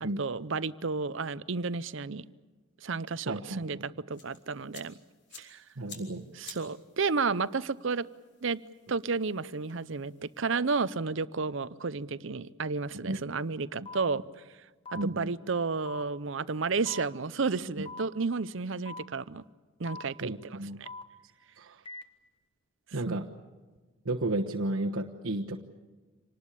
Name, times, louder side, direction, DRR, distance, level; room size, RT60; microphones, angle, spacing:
voice 1, 0.0-2.3 2.8-5.0 5.3-5.6 6.4-8.1 8.4-8.6 8.9-14.2 14.9-19.4 19.8-20.9 23.1-23.2, right 4 dB, 60° right, 17 dB, 0.7 m, -32 dB
voice 2, 3.3-3.8 5.8-6.3 13.1-13.2 14.9-15.3 20.2-20.8 21.6-21.8 22.9-23.2 24.0-25.6, right 1 dB, 85° right, -1 dB, 1.2 m, -33 dB
sound 1, 4.1-10.6, left 5 dB, 50° left, 4.0 m, -53 dB
sound 2, 13.9-14.0 14.9-15.0 15.9-16.0 16.9-17.0 17.9-18.0 18.9-19.0 19.9-20.0 20.9-21.0 21.9-22.0, left 3 dB, 25° left, 1.2 m, -42 dB
26.5 x 19.5 x 8.4 m, 1.3 s
head